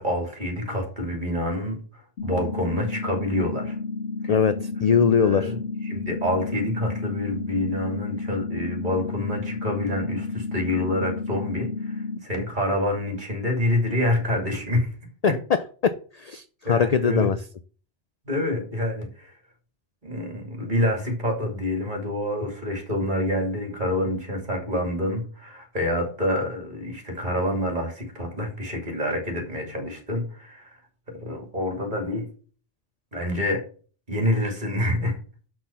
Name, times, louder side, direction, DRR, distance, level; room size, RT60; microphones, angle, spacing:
voice 1, 0.0-1.8 2.2-3.8 5.2-5.6 5.8-14.9 16.6-17.3 18.2-19.3 20.0-30.8 31.1-32.3 33.1-33.6 34.1-35.2, left 1 dB, 40° right, 2 dB, 3.1 m, -27 dB
sound 1, 2.2-12.2, left 4 dB, 70° left, 1.6 m, -31 dB
voice 2, 4.3-5.5 15.2-17.4, left 6 dB, 50° left, 12 dB, 0.4 m, -22 dB
6.1 x 6.1 x 7.0 m, 0.41 s
omnidirectional pair, 1.2 m